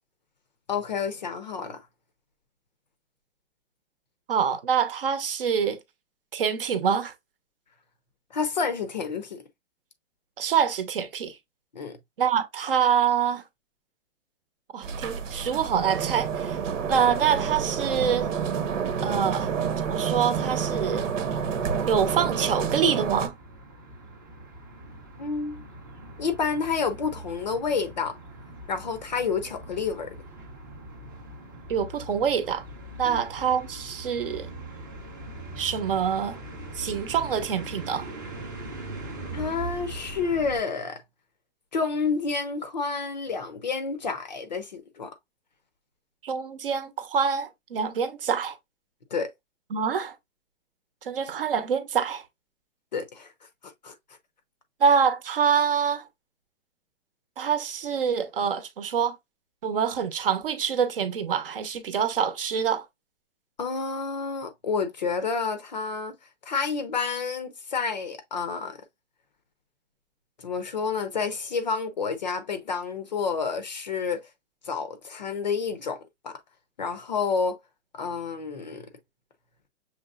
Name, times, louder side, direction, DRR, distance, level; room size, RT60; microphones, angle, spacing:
voice 1, 0.7-1.8 8.3-9.4 11.7-12.0 25.2-25.6 26.2-28.2 28.7-30.2 33.0-33.2 39.3-41.0 41.7-45.2 49.1-49.3 52.9-53.3 53.8-53.9 63.6-66.1 66.4-68.8 70.4-74.2 74.6-76.0 76.2-76.4 76.8-77.6 77.9-78.9, left 5 dB, 35° left, 0.6 m, -29 dB
voice 2, 4.3-5.8 6.3-7.1 10.4-11.4 12.2-13.4 14.7-16.6 16.9-18.3 19.0-19.5 19.8-21.1 21.9-23.3 31.7-32.6 33.0-34.5 35.6-36.4 36.7-38.1 46.2-48.6 49.7-50.1 51.0-52.2 54.8-56.1 57.4-59.2 59.6-62.9, right 7 dB, 45° right, 0.9 m, -25 dB
sound 1, 14.8-23.3, right 7 dB, 80° right, 1.1 m, -29 dB
sound 2, 21.5-40.6, right 2 dB, 15° right, 0.6 m, -41 dB
6.5 x 3.1 x 2.4 m
hypercardioid pair, 175°, 38 cm